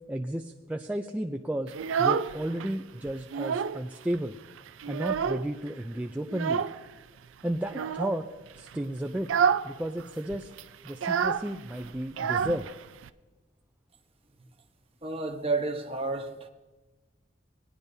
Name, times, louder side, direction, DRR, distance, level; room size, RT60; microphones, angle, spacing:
voice 1, 0.1-1.7 2.0-4.4 4.9-6.6 7.4-8.3 8.6-9.3 9.6-10.5 10.8-12.7, right 1 dB, 5° right, 3 dB, 0.3 m, -33 dB
Child speech kid speaking, 1.7-2.7 3.1-3.8 4.1-4.2 4.6-5.7 6.3-6.8 7.7-8.2 8.6-8.8 9.2-9.7 10.0-10.1 10.3-13.1, right 7 dB, 80° right, 0.4 m, -28 dB
voice 2, 15.0-16.5, right 3 dB, 30° right, 3 dB, 1.0 m, -31 dB
19.5 x 10.0 x 2.7 m, 1.2 s
head